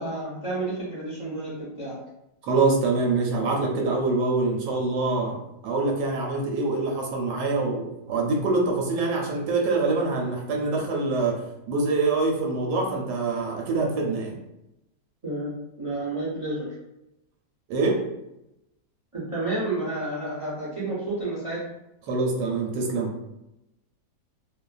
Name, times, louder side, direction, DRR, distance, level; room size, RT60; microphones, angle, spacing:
voice 1, 0.0-2.0 15.2-16.7 19.1-21.7, right 2 dB, 40° right, -8 dB, 0.4 m, -30 dB
voice 2, 2.4-5.3 5.6-11.4 11.7-14.4 17.7-18.0 22.1-23.1, right 3 dB, 85° right, 0 dB, 1.2 m, -25 dB
2.5 x 2.4 x 2.3 m, 0.88 s
omnidirectional pair, 1.7 m